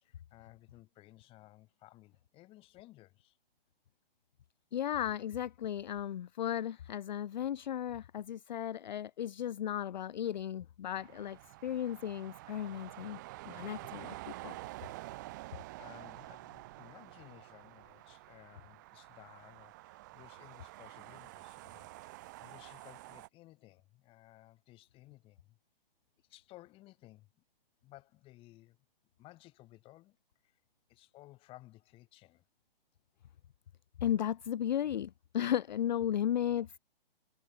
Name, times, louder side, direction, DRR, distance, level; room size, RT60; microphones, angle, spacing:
voice 1, 0.0-3.4 15.8-25.6 26.3-27.3 27.8-28.8 29.2-30.2 30.4-30.6 30.9-32.4, left 17 dB, 20° left, 3.7 m, -58 dB
voice 2, 4.7-14.6 34.0-36.8, left 10 dB, 50° left, 0.6 m, -35 dB
sound 1, 10.9-23.3, right 19 dB, 20° right, 0.7 m, -49 dB
hypercardioid pair, 155°, 30 cm